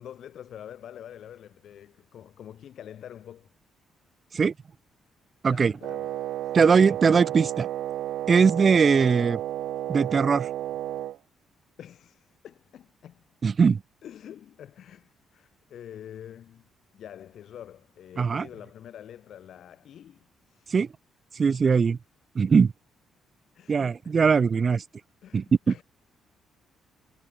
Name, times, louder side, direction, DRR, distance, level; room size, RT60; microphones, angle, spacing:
voice 1, 0.0-3.5 5.5-6.1 6.4-6.8 11.8-13.2 14.0-16.7 16.9-20.7 23.5-24.1 25.2-25.8, left 10 dB, 70° left, 2.6 m, -46 dB
Wind instrument woodwind instrument, 5.8-11.2, right 13 dB, 80° right, 0.8 m, -32 dB
voice 2, 6.5-7.7 8.3-9.4 9.9-10.5 13.4-13.8 18.2-18.5 20.7-20.9 21.4-22.0 22.4-22.7 23.7-24.8 25.3-25.4, right 5 dB, 40° right, 0.3 m, -20 dB
cardioid pair, 90°, 0 cm